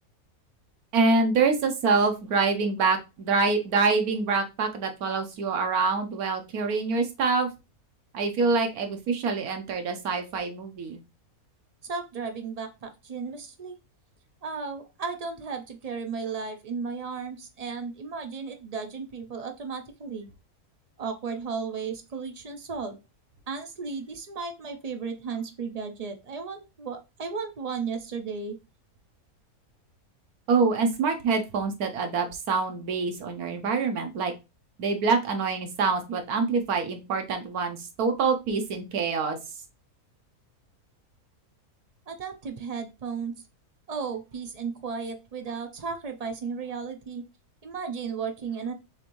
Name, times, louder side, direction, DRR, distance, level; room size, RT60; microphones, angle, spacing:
voice 1, 0.9-7.5 8.1-11.0 30.5-34.3 34.8-39.4, right 4 dB, 85° right, 6 dB, 1.4 m, -25 dB
voice 2, 11.8-13.7 14.4-20.3 21.0-23.0 23.5-28.6 42.1-43.3 43.9-47.2 47.6-48.7, right 5 dB, 70° right, 6 dB, 0.3 m, -34 dB
6.7 x 2.6 x 3.0 m, 0.26 s
omnidirectional pair, 1.5 m